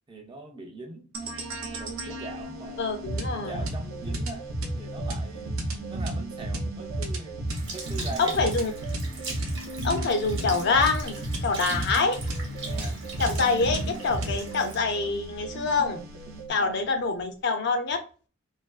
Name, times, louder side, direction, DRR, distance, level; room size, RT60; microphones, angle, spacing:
voice 1, 0.1-1.1 1.8-4.5 4.8-7.4 7.7-8.6 12.6-13.0 13.5-13.6 16.6-16.8, right 2 dB, 20° right, 0.3 m, -42 dB
sound 1, 1.1-16.5, right 1 dB, 80° right, 0.6 m, -33 dB
voice 2, 2.8-3.6 8.2-8.7 9.8-12.2 13.2-16.1 16.5-18.0, left 4 dB, 55° left, 0.5 m, -26 dB
Sink (filling or washing) / Liquid, 7.5-16.1 16.7-16.8, right 3 dB, 60° right, 0.9 m, -41 dB
2.5 x 2.2 x 2.3 m
head